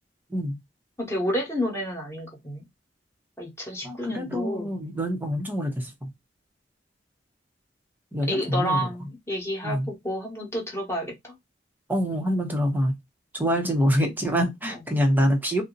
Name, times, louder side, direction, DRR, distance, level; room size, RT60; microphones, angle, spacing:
voice 1, 1.0-2.6 3.4-4.7 8.3-11.4, equal, 15° left, 1.1 m, -30 dB
voice 2, 3.8-6.1 8.1-9.1 9.6-9.9 11.9-12.9 13.3-15.6, equal, 10° right, 0.7 m, -25 dB
2.6 x 2.1 x 3.8 m
head